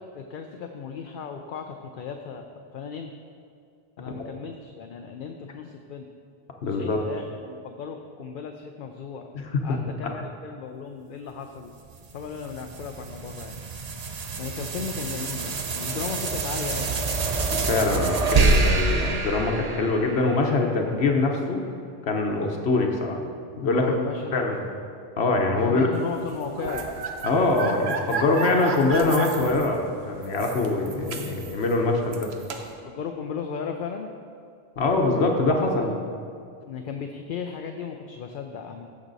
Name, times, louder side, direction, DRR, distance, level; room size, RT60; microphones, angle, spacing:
voice 1, 0.1-2.5 2.7-3.1 4.0-6.1 6.6-9.3 9.6-11.7 12.1-13.6 14.1-17.0 23.7-24.5 25.7-26.9 32.8-34.1 35.6-35.9 36.7-38.8, left 6 dB, 60° left, 5 dB, 0.7 m, -36 dB
voice 2, 6.6-7.0 9.3-9.8 10.0-10.2 17.5-21.6 22.0-23.2 23.6-23.8 24.3-24.6 25.2-25.9 27.2-32.3 34.8-35.9, left 3 dB, 90° left, 2 dB, 1.2 m, -23 dB
sound 1, 11.9-20.5, right 3 dB, 45° right, 0.7 m, -26 dB
sound 2, 26.2-32.7, right 4 dB, 85° right, 1.1 m, -33 dB
15.0 x 6.3 x 4.0 m, 2.4 s
omnidirectional pair, 1.0 m